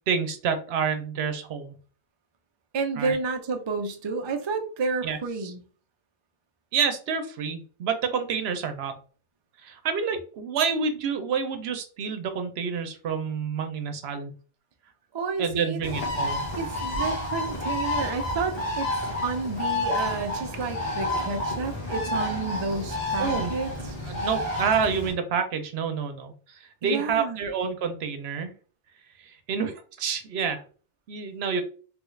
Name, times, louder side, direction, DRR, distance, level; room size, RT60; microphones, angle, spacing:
voice 1, 0.1-1.7 3.0-3.2 5.0-5.5 6.7-9.0 9.6-14.3 15.4-16.4 23.2-23.5 24.0-28.5 29.2-30.6 31.1-31.6, right 6 dB, 75° right, 0.8 m, -28 dB
voice 2, 2.7-5.6 15.1-16.0 16.6-18.9 19.2-24.0 26.8-27.4, right 4 dB, 50° right, 0.3 m, -30 dB
Bird, 15.8-25.1, left 1 dB, 70° left, 1.4 m, -30 dB
3.4 x 2.3 x 3.1 m
omnidirectional pair, 1.1 m